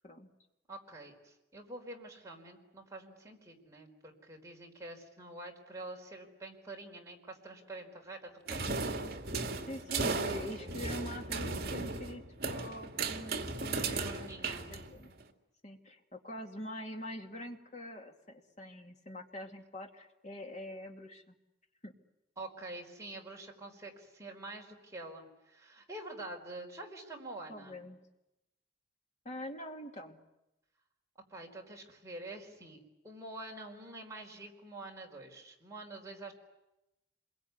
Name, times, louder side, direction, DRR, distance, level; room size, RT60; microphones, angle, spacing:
voice 1, 0.7-9.3 10.1-10.7 14.0-14.6 22.4-27.8 31.3-36.3, right 2 dB, 15° right, 0 dB, 4.4 m, -47 dB
sound 1, 8.5-15.2, right 3 dB, 50° right, 2.3 m, -36 dB
voice 2, 9.7-14.3 14.7-15.2 15.6-21.3 21.8-21.9 27.5-28.0 29.2-30.2, left 1 dB, 35° left, 3 dB, 2.6 m, -45 dB
27.5 x 22.5 x 9.7 m, 0.93 s
head